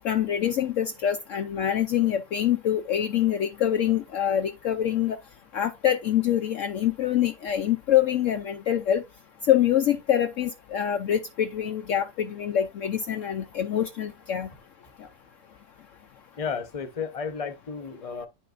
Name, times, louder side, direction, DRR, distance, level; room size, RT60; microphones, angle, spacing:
voice 1, 0.0-5.2 5.5-9.0 9.5-14.5, left 10 dB, 65° left, 0.9 m, -25 dB
voice 2, 16.4-18.3, left 6 dB, 25° left, 0.9 m, -33 dB
10.0 x 5.4 x 2.6 m
omnidirectional pair, 1.6 m